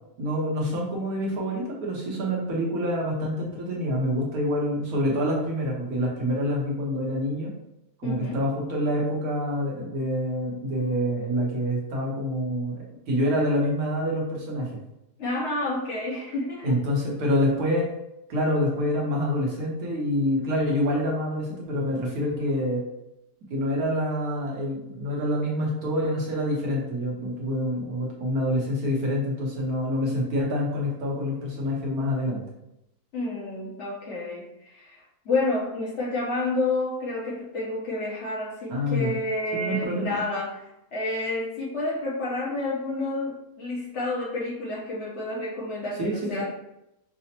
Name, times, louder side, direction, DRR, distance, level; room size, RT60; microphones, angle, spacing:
voice 1, 0.2-7.5 8.0-14.7 16.6-17.9 18.3-22.8 23.5-32.4 38.7-39.1 39.5-40.2 46.0-46.4, equal, 70° right, -3 dB, 1.4 m, -26 dB
voice 2, 8.0-8.4 15.2-16.7 33.1-46.4, left 2 dB, 50° left, -5 dB, 1.2 m, -30 dB
4.9 x 2.0 x 2.9 m, 0.87 s
omnidirectional pair, 1.7 m